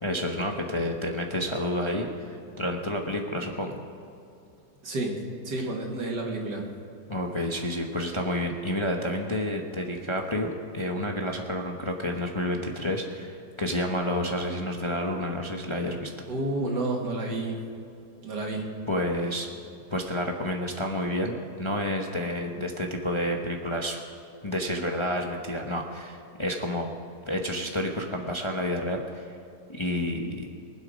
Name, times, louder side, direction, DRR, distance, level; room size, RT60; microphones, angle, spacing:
voice 1, 0.0-3.8 5.6-5.7 7.1-16.1 18.9-19.5 19.9-24.0 24.4-26.9 27.3-29.4 29.7-30.5, left 1 dB, 25° left, 1 dB, 0.8 m, -30 dB
voice 2, 4.8-5.2 5.4-6.6 16.3-17.6 18.2-18.7, right 2 dB, 85° right, 0 dB, 2.7 m, -30 dB
23.0 x 8.2 x 5.2 m, 2.6 s
omnidirectional pair, 1.8 m